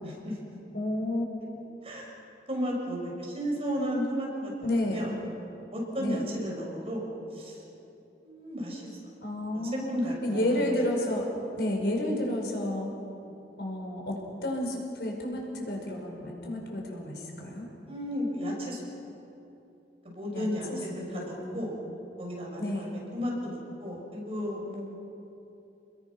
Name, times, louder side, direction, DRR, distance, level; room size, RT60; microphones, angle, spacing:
voice 1, 0.0-0.4 1.8-2.1 2.5-5.1 5.7-7.6 8.2-8.9 9.5-10.6 13.2-13.4 17.9-18.8 20.0-21.8 22.2-24.9, equal, 35° right, -2 dB, 6.3 m, -34 dB
voice 2, 0.7-1.3 4.6-5.1 6.0-6.2 9.2-10.0 10.2-11.2 11.6-12.9 13.6-17.7 20.3-20.8 21.1-21.6 22.6-22.9, left 1 dB, 70° left, 0 dB, 5.2 m, -31 dB
29.5 x 21.5 x 6.1 m, 2.9 s
head